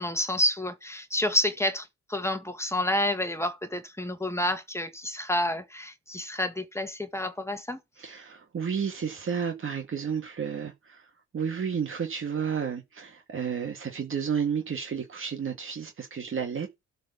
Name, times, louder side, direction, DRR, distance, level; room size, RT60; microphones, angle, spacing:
voice 1, 0.0-7.8, left 1 dB, 10° left, 1.8 m, -29 dB
voice 2, 8.0-16.7, right 7 dB, 45° right, 2.0 m, -32 dB
12.5 x 4.2 x 7.1 m
cardioid pair, 90°, 30 cm